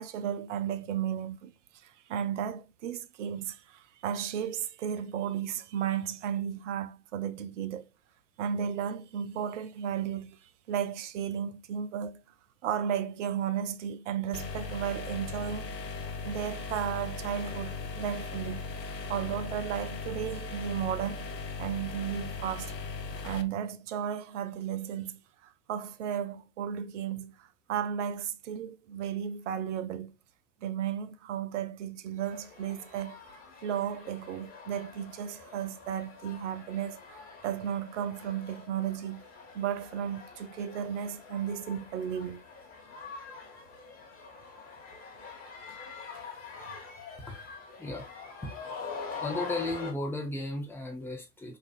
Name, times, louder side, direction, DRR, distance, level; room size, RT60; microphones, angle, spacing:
voice 1, 0.0-1.5 1.8-7.9 8.4-10.4 10.7-12.2 12.6-15.7 16.2-18.7 19.1-21.3 21.6-22.7 23.2-30.1 30.6-33.2 33.6-39.3 39.5-42.4 46.6-46.7, right 9 dB, 50° right, 0.5 m, -34 dB
sound 1, 14.3-23.4, left 4 dB, 80° left, 0.6 m, -38 dB
sound 2, 32.2-49.9, left 5 dB, 25° left, 1.4 m, -45 dB
voice 2, 49.2-51.6, left 2 dB, 5° left, 0.7 m, -35 dB
4.2 x 2.4 x 2.4 m
figure-of-eight pair, 85°, 49 cm